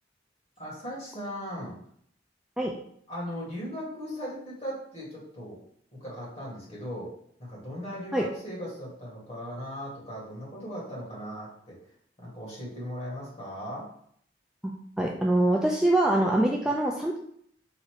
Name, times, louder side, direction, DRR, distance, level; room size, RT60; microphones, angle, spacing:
voice 1, 0.6-1.8 3.1-5.6 6.0-7.1 7.4-11.8 12.2-13.9 16.5-16.6, equal, 35° left, -5 dB, 1.9 m, -38 dB
voice 2, 14.6-17.2, right 1 dB, 5° right, -2 dB, 0.3 m, -24 dB
4.1 x 2.5 x 4.8 m, 0.66 s
head